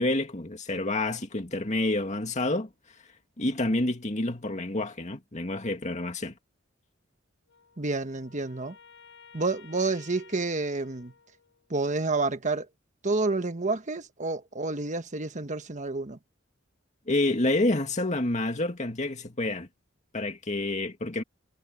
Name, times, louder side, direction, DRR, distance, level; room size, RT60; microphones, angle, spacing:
voice 1, 0.0-2.7 3.4-6.4 17.1-19.7 20.1-21.2, left 2 dB, 35° left, 2.3 m, -28 dB
Wind instrument woodwind instrument, 7.5-11.8, left 6 dB, 70° left, 5.5 m, -54 dB
voice 2, 7.8-8.8 9.3-11.1 11.7-12.7 13.0-16.2, right 3 dB, 40° right, 1.4 m, -29 dB
head